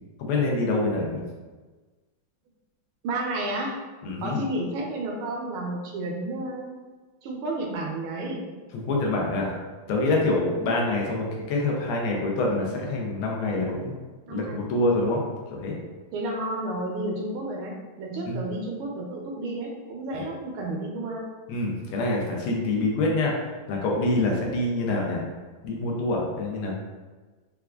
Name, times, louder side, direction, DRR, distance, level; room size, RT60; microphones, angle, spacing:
voice 1, 0.2-1.2 4.0-4.4 8.7-9.6 9.9-13.9 14.3-15.2 15.5-15.8 18.3-18.4 20.1-20.2 21.5-25.2 25.6-26.7, left 2 dB, 85° left, -2 dB, 1.6 m, -26 dB
voice 2, 3.0-3.8 4.2-6.8 7.2-8.4 14.3-14.6 16.1-21.3, right 2 dB, 80° right, 0 dB, 1.5 m, -31 dB
4.4 x 2.4 x 2.2 m, 1.3 s
omnidirectional pair, 2.3 m